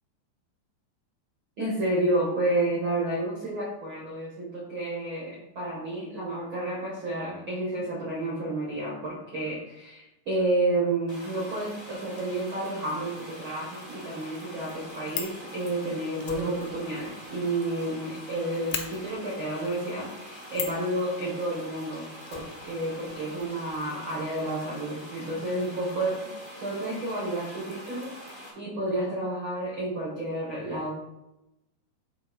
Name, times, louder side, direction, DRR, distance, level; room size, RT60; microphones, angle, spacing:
voice 1, 1.6-26.3 26.6-30.9, right 1 dB, 80° right, -5 dB, 1.1 m, -30 dB
sound 1, 11.1-28.5, equal, 35° left, 0.4 m, -44 dB
Fire, 14.7-15.4 16.2-18.0 18.2-18.3 18.7-18.9 20.5-20.9 22.3-23.2 23.4-23.5 23.7-23.8, left 8 dB, 80° left, 3.0 m, -36 dB
7.8 x 3.6 x 5.3 m, 0.92 s
omnidirectional pair, 5.2 m